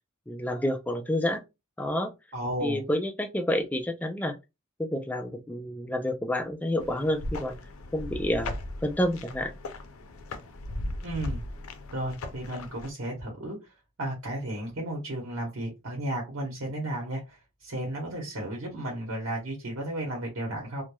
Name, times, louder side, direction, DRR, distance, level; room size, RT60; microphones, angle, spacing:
voice 1, 0.3-1.4 1.8-2.1 2.6-4.4 4.8-7.6 7.9-8.5 8.8-9.5, left 1 dB, 10° left, 0.3 m, -29 dB
voice 2, 2.3-2.8 11.0-11.4 11.9-13.6 14.0-20.8, right 1 dB, 75° right, 0.9 m, -33 dB
sound 1, 6.8-12.9, left 1 dB, 85° left, 0.5 m, -38 dB
3.0 x 2.1 x 2.2 m
head